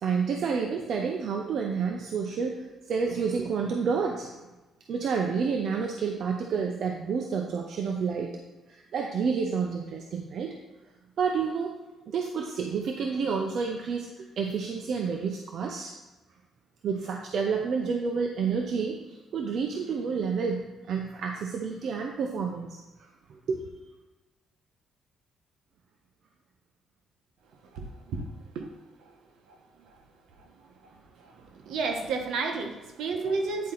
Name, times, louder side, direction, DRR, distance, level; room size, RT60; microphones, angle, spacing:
voice 1, 0.0-4.3 4.9-8.4 8.7-10.5 11.2-11.8 12.1-15.9 16.8-22.7 23.3-23.7 31.7-32.2 32.5-32.6, right 5 dB, 65° right, 2 dB, 0.7 m, -29 dB
voice 2, 27.7-28.2 28.5-28.7 29.5-29.6 31.2-31.3 31.7-33.7, right 4 dB, 80° right, 3 dB, 1.1 m, -31 dB
9.5 x 4.3 x 3.9 m, 1.1 s
cardioid pair, 90°, 0 cm